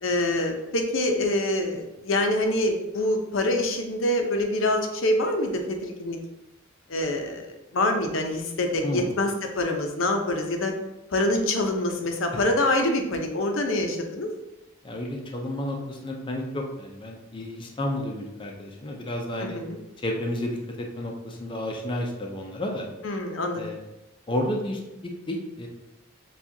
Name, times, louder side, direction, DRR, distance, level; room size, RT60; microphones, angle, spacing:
voice 1, 0.0-6.2 6.9-7.4 7.7-10.7 11.1-14.3 19.4-19.8 23.0-23.6, left 1 dB, 70° left, 4 dB, 0.7 m, -25 dB
voice 2, 14.8-19.6 20.0-22.8 23.6-23.8 24.3-25.7, left 1 dB, 25° left, 0 dB, 0.5 m, -31 dB
7.1 x 2.4 x 2.7 m, 0.94 s
head